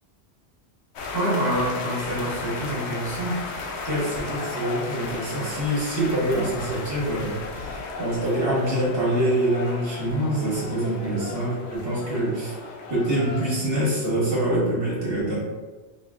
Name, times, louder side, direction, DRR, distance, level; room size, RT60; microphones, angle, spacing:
sound 1, 1.0-13.9, left 3 dB, 85° left, 0.9 m, -35 dB
voice 1, 1.1-3.4 3.8-12.6 12.9-15.3, right 1 dB, 60° right, -7 dB, 1.6 m, -25 dB
4.8 x 2.7 x 2.4 m, 1.3 s
omnidirectional pair, 1.1 m